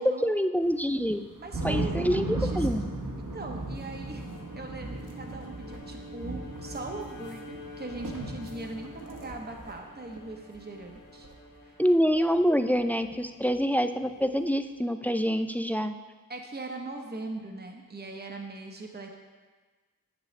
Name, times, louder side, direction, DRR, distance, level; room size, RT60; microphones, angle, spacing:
voice 1, 0.0-1.3 1.6-2.9 11.8-15.9, equal, 5° left, 9 dB, 0.3 m, -26 dB
sound 1, 0.6-9.8 10.2-10.3 10.5-10.6 10.8-11.3 13.0-13.1 14.0-14.1, right 2 dB, 60° right, 1.1 m, -36 dB
voice 2, 1.4-2.7 3.2-4.3 4.6-11.3 11.6-11.8 16.3-19.1, right 2 dB, 30° right, 2 dB, 0.9 m, -40 dB
Bowed string instrument, 3.9-12.3, left 1 dB, 65° left, 1.3 m, -48 dB
sound 2, 8.1-10.3 10.7-10.8, equal, 75° right, 1.7 m, -45 dB
9.0 x 7.8 x 3.2 m, 1.4 s
wide cardioid pair, 65°, 35 cm